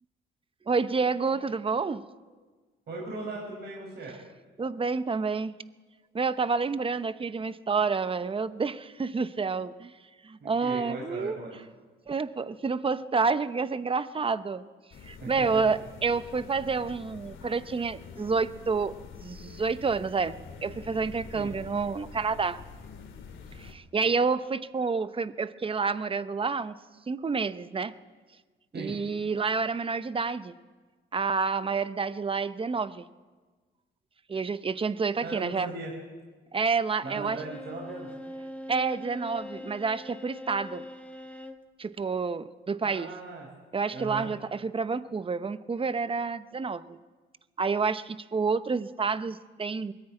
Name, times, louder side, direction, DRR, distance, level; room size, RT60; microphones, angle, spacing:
voice 1, 0.7-2.0 3.4-3.5 4.6-5.5 6.1-9.9 10.2-11.6 12.1-14.7 15.1-19.0 19.2-22.6 23.6-26.7 27.1-27.9 28.7-30.5 31.1-33.1 34.3-35.7 36.5-37.4 38.7-40.8 41.8-43.1 43.7-47.0 47.6-49.9, right 4 dB, 25° right, 13 dB, 0.9 m, -29 dB
voice 2, 2.9-4.1 10.4-11.6 15.2-15.7 21.3-21.5 28.7-29.0 35.2-35.9 37.0-38.1 42.8-43.5 43.9-44.3, right 3 dB, 55° right, -3 dB, 5.7 m, -38 dB
sound 1, 14.9-23.7, left 5 dB, 75° left, 2.6 m, -46 dB
Bowed string instrument, 37.4-41.7, left 1 dB, 5° left, 1.6 m, -42 dB
21.0 x 14.0 x 9.0 m, 1.4 s
cardioid pair, 90°, 20 cm